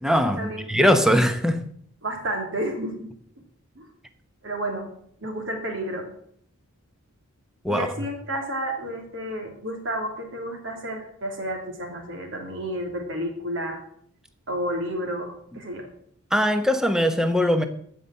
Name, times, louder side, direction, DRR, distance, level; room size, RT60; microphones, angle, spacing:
voice 1, 0.0-1.7 7.6-7.9 16.3-17.6, equal, ahead, 0.9 m, -21 dB
voice 2, 2.0-3.1 3.7-3.8 4.4-4.9 5.2-6.1 7.7-13.8 14.5-15.9, right 1 dB, 55° right, 3.1 m, -31 dB
15.0 x 5.6 x 7.6 m
head